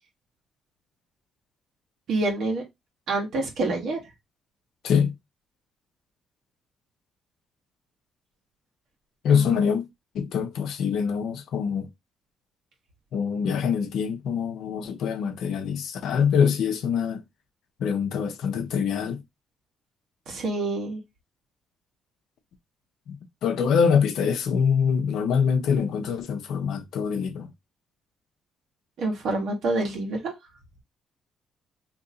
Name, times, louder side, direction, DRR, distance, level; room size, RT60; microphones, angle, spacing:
voice 1, 2.1-2.6 3.1-4.0 9.3-9.7 20.3-21.0 29.0-30.3, right 2 dB, 70° right, 1.3 m, -27 dB
voice 2, 9.2-9.9 10.1-11.9 13.1-17.2 17.8-19.2 23.1-23.2 23.4-27.5, left 7 dB, 75° left, 0.7 m, -24 dB
2.9 x 2.6 x 3.8 m
cardioid pair, 90°, 0 cm